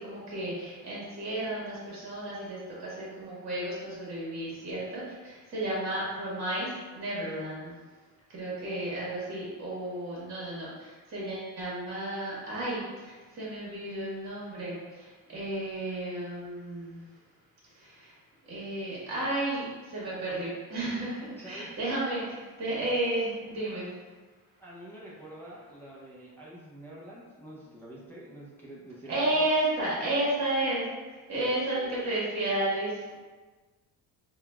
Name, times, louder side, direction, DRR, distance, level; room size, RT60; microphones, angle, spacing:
voice 1, 0.0-7.7 8.3-17.1 17.7-18.2 18.4-23.9 29.1-33.2, right 1 dB, 45° right, -6 dB, 1.4 m, -32 dB
voice 2, 21.4-21.8 24.6-29.4, right 1 dB, 5° left, -8 dB, 0.5 m, -47 dB
5.7 x 2.3 x 2.3 m, 1.3 s
cardioid pair, 175°, 37 cm